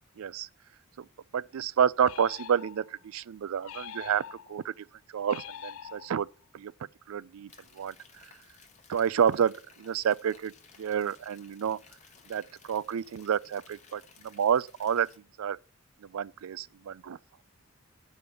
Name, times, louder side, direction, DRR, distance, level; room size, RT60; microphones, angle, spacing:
voice 1, 0.2-0.5 1.3-4.7 5.1-6.3 6.5-6.7 7.1-7.5 7.8-7.9 8.9-9.5 9.8-10.5 10.8-11.8 12.3-15.1 15.4-15.6 16.1-17.2, right 8 dB, 80° right, 0.4 m, -29 dB
sound 1, 2.0-3.1 3.6-4.7 5.2-6.4, left 9 dB, 75° left, 0.4 m, -45 dB
sound 2, 7.5-15.2, left 5 dB, 35° left, 1.2 m, -58 dB
7.8 x 5.2 x 6.9 m
head